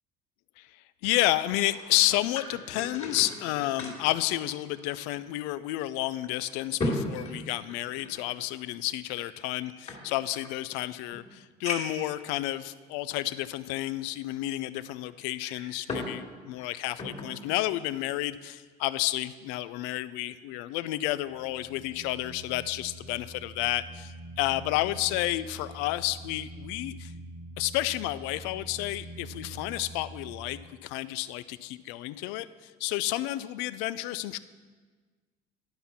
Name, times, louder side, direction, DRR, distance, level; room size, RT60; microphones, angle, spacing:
voice 1, 0.6-27.1 27.6-34.4, left 16 dB, 90° left, 15 dB, 0.4 m, -31 dB
sound 1, 1.4-5.2 5.6-5.7 6.2-8.2 9.1-10.5 11.1-11.2 11.6-12.1 12.8-12.9 15.2-16.2 16.5-17.3 17.8-18.0, left 2 dB, 40° left, 2.2 m, -37 dB
sound 2, 21.1-30.6, right 1 dB, 20° right, 0.8 m, -45 dB
11.0 x 5.5 x 5.7 m, 1.4 s
cardioid pair, 125°, 17 cm